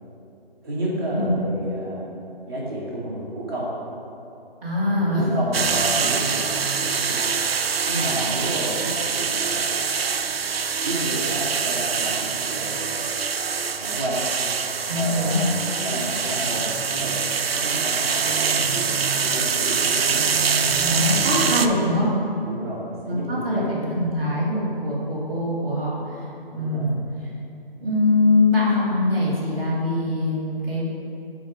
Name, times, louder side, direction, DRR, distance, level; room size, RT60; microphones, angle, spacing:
voice 1, 0.6-2.1 2.4-3.7 4.9-7.2 7.9-9.8 10.8-13.1 13.8-14.2 14.9-17.1 17.5-21.8 22.4-23.6 26.5-26.9, right 1 dB, 25° right, -8 dB, 1.6 m, -31 dB
voice 2, 4.6-5.2 14.9-15.5 20.8-22.1 23.1-27.0 27.8-30.9, left 2 dB, 10° right, -11 dB, 0.9 m, -23 dB
sound 1, 5.5-21.7, right 6 dB, 75° right, 0.5 m, -24 dB
6.3 x 4.5 x 6.0 m, 2.8 s
figure-of-eight pair, 160°, 30 cm